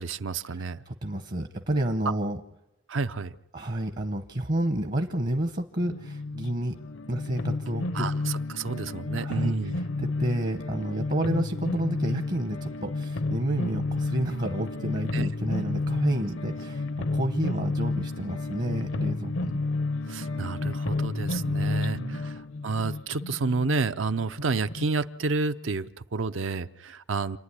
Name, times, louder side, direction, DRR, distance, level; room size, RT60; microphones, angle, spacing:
voice 1, 0.0-0.8 2.9-3.3 7.9-9.8 15.1-15.3 20.1-27.4, right 4 dB, 70° right, 12 dB, 0.7 m, -30 dB
voice 2, 0.5-2.4 3.5-6.8 7.1-8.1 9.2-16.9 17.1-19.6 21.6-22.2, right 1 dB, 45° right, 7 dB, 1.0 m, -30 dB
sound 1, 5.8-24.9, left 3 dB, 70° left, 0.7 m, -31 dB
27.5 x 11.5 x 9.8 m, 0.96 s
head